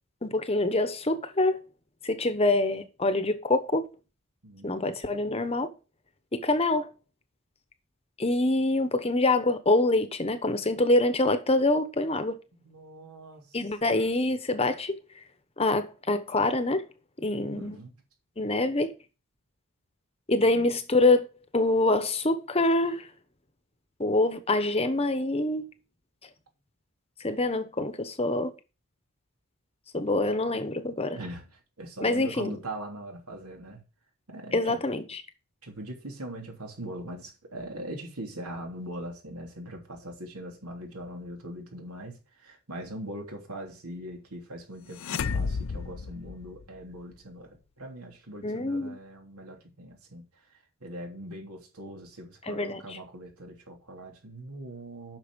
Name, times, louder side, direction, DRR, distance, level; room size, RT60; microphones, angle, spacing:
voice 1, 0.2-1.6 2.0-3.9 4.6-5.7 6.3-6.9 8.2-12.3 13.5-15.0 15.6-16.8 17.2-17.8 18.4-18.9 20.3-21.3 21.5-23.1 24.0-25.6 27.2-28.5 29.9-31.2 32.0-32.6 34.5-35.2 48.4-49.0 52.5-53.0, left 2 dB, 25° left, 1.0 m, -25 dB
voice 2, 4.4-5.0 12.6-14.4 17.5-17.9 20.3-20.7 31.1-33.8 34.3-34.8 35.6-50.2 50.8-55.2, right 1 dB, 85° right, 3.2 m, -41 dB
sound 1, 44.9-47.0, left 5 dB, 65° left, 0.5 m, -32 dB
8.9 x 6.2 x 6.2 m
head